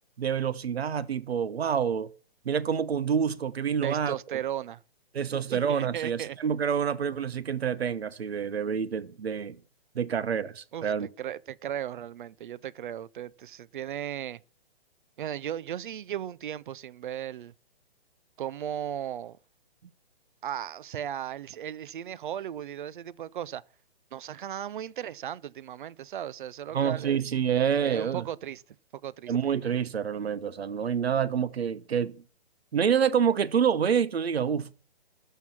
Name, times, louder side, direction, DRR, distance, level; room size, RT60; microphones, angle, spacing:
voice 1, 0.2-2.1 2.4-4.1 5.1-9.6 9.9-11.1 26.7-28.2 29.3-32.2 32.7-34.7, right 7 dB, 80° right, 1.0 m, -27 dB
voice 2, 3.8-4.8 5.5-6.4 10.7-14.4 15.2-17.5 18.4-19.4 20.4-23.6 24.1-27.2 27.8-28.6 29.0-29.3, right 10 dB, 55° right, 0.5 m, -36 dB
12.0 x 4.6 x 7.1 m
hypercardioid pair, 145°, 31 cm